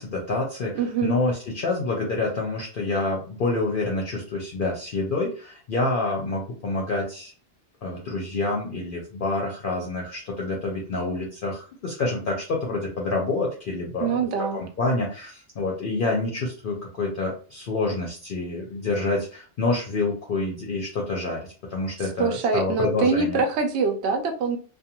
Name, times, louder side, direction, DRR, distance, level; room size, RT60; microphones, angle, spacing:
voice 1, 0.0-7.3 7.8-14.2 14.5-21.4 21.7-23.4, left 2 dB, 60° left, -1 dB, 0.6 m, -27 dB
voice 2, 0.7-1.1 14.0-14.6 22.2-24.6, right 5 dB, 70° right, 5 dB, 0.8 m, -24 dB
2.5 x 2.3 x 2.8 m, 0.39 s
omnidirectional pair, 1.2 m